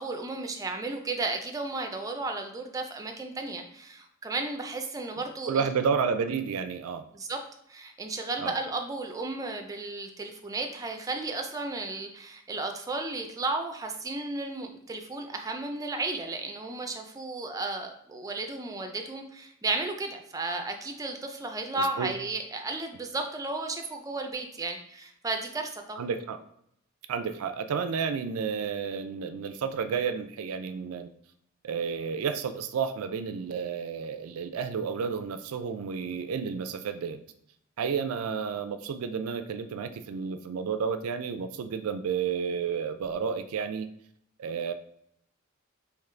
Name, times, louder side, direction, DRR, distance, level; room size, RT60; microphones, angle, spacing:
voice 1, 0.0-5.7 7.1-7.4 7.7-26.0, right 3 dB, 15° right, 4 dB, 0.4 m, -34 dB
voice 2, 5.2-7.0 8.4-8.5 21.8-22.1 26.0-26.4 27.1-31.1 31.6-37.2 37.8-43.9 44.4-44.7, right 6 dB, 90° right, 10 dB, 0.4 m, -31 dB
3.7 x 3.1 x 3.2 m, 0.72 s
head